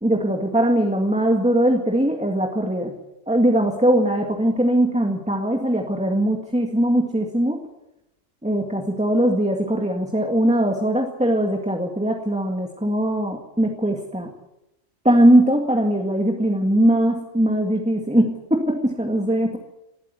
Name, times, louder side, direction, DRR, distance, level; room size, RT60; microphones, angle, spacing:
voice 1, 0.0-2.9 3.3-7.6 8.4-14.3 15.0-19.6, right 1 dB, 5° right, 2 dB, 1.9 m, -20 dB
19.5 x 13.5 x 9.6 m, 0.90 s
omnidirectional pair, 1.2 m